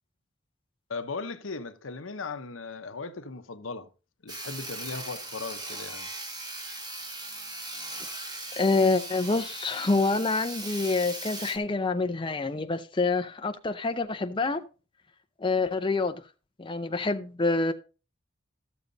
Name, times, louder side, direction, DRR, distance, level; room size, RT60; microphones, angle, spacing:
voice 1, 0.9-3.9 4.2-6.1, left 4 dB, 85° left, 0.9 m, -37 dB
Sawing, 4.3-11.6, right 2 dB, 20° right, 1.5 m, -39 dB
voice 2, 8.6-14.6 15.4-16.2 16.6-17.7, left 3 dB, 25° left, 0.6 m, -27 dB
13.0 x 7.0 x 4.0 m
head